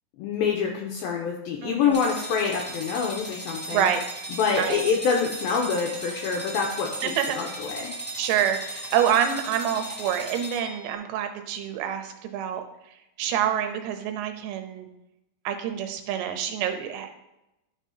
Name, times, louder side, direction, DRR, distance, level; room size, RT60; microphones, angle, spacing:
voice 1, 0.2-3.9 4.4-7.9, left 6 dB, 80° left, 0 dB, 2.2 m, -26 dB
voice 2, 1.6-2.0 3.7-4.0 4.5-4.8 7.0-7.4 8.2-12.6 13.2-14.9 15.5-17.1, right 9 dB, 85° right, 6 dB, 3.1 m, -27 dB
sound 1, 1.9-10.9, right 1 dB, 5° right, 0.9 m, -37 dB
12.0 x 5.5 x 2.8 m, 0.89 s
omnidirectional pair, 5.0 m